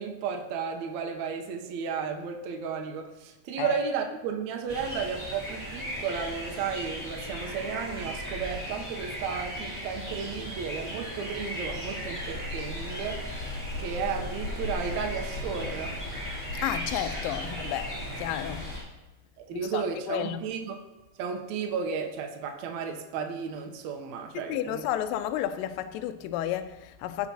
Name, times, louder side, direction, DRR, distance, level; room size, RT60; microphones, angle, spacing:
voice 1, 0.0-15.9 19.4-20.8 21.2-24.8, right 6 dB, 85° right, 1.6 m, -33 dB
sound 1, 4.7-18.8, equal, 5° left, 2.4 m, -37 dB
sound 2, 11.6-16.9, left 2 dB, 60° left, 2.0 m, -38 dB
voice 2, 16.6-18.7 19.5-20.4 24.5-27.3, left 11 dB, 90° left, 2.0 m, -32 dB
15.5 x 5.7 x 2.8 m
omnidirectional pair, 4.5 m